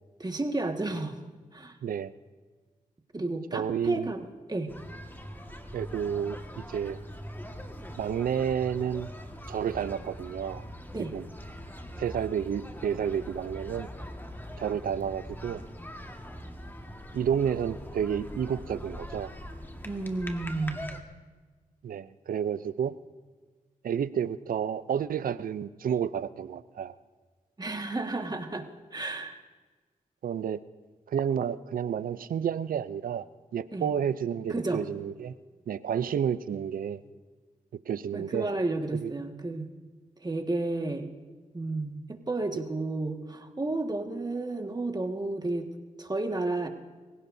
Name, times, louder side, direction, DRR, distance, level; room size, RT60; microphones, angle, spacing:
voice 1, 0.2-1.2 1.5-1.8 3.1-4.7 10.9-11.1 19.8-20.9 27.6-29.4 33.7-33.9 34.5-34.8 38.1-39.7 40.2-41.1 41.5-45.7 46.0-46.7, right 2 dB, 30° right, 4 dB, 1.7 m, -32 dB
voice 2, 1.8-2.1 3.5-4.1 5.7-7.0 8.0-9.1 9.5-10.7 11.1-11.3 12.0-13.9 14.6-15.6 17.1-19.3 21.8-22.9 23.8-27.0 30.2-30.6 31.1-33.3 33.5-35.4 35.7-37.0 37.9-38.5 39.0-39.1, right 8 dB, 85° right, 15 dB, 0.5 m, -30 dB
sound 1, 4.7-21.0, equal, 15° left, 1.6 m, -42 dB
24.5 x 16.5 x 2.7 m, 1.4 s
cardioid pair, 55°, 14 cm